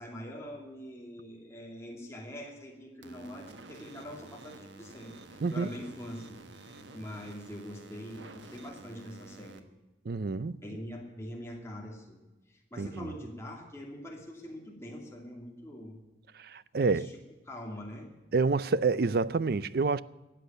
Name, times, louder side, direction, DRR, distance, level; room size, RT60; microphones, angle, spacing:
voice 1, 0.0-9.6 10.6-12.2 12.5-16.0 16.8-17.1 17.5-18.1, equal, 15° left, 2.6 m, -44 dB
sound 1, 3.0-9.6, right 2 dB, 85° right, 1.2 m, -50 dB
voice 2, 5.4-5.7 10.1-10.6 12.8-13.1 16.4-17.1 18.3-20.0, right 4 dB, 55° right, 0.4 m, -28 dB
13.5 x 8.5 x 9.2 m
head